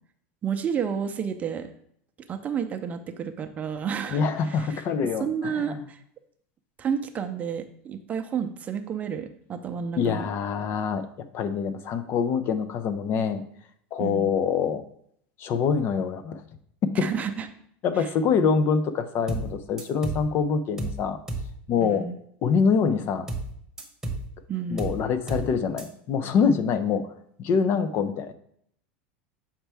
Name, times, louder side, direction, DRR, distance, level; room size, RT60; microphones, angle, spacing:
voice 1, 0.4-1.7 2.3-6.0 6.8-10.3 14.0-14.3 17.0-17.5 21.8-22.2 24.5-24.9, right 7 dB, 25° right, 6 dB, 0.6 m, -31 dB
voice 2, 4.1-5.8 10.0-11.1 11.3-13.4 13.9-14.8 15.4-16.4 17.0-17.1 17.8-21.2 21.7-22.0 22.4-23.3 24.7-27.1 27.4-28.3, left 6 dB, 45° left, 10 dB, 0.6 m, -25 dB
sound 1, 19.3-19.5 19.8-20.3 20.8-21.0 21.3-21.5 23.3-23.5 23.8-24.3 24.8-25.0 25.3-25.5 25.8-25.9, right 2 dB, 10° right, 1.1 m, -31 dB
7.2 x 4.4 x 3.4 m, 0.67 s
supercardioid pair, 125°, 6 cm